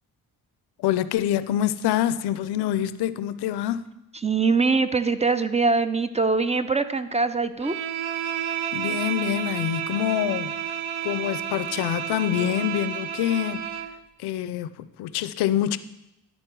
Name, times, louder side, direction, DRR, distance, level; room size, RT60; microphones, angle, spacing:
voice 1, 0.8-3.8 8.7-10.6 11.0-13.7 14.2-15.8, left 11 dB, 85° left, 0.5 m, -26 dB
voice 2, 4.2-7.7, right 4 dB, 20° right, 0.4 m, -23 dB
Bowed string instrument, 7.6-14.0, right 9 dB, 75° right, 0.7 m, -31 dB
11.5 x 4.1 x 4.5 m
cardioid pair, 75°, 38 cm